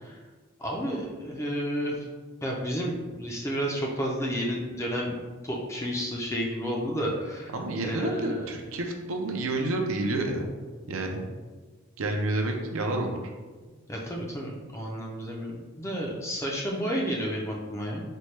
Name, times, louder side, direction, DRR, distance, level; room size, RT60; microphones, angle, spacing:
voice 1, 0.6-2.1 2.4-5.2 5.4-7.5 7.8-8.5 13.7-18.0, equal, 15° left, -2 dB, 0.4 m, -31 dB
voice 2, 7.5-10.5 10.9-11.3 12.0-13.2, right 2 dB, 70° right, 2 dB, 0.5 m, -29 dB
4.3 x 2.2 x 3.1 m, 1.3 s
head